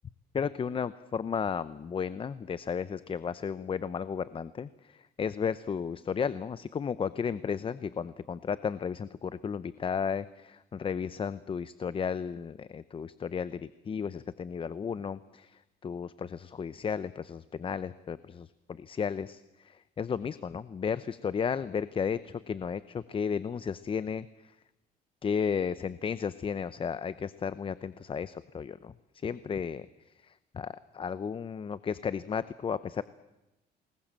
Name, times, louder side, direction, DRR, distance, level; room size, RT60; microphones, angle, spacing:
voice 1, 0.3-24.3 25.2-28.9 29.2-29.9 30.2-33.0, left 6 dB, 30° left, 15 dB, 0.8 m, -34 dB
28.5 x 21.0 x 7.6 m, 0.95 s
cardioid pair, 110°, 17 cm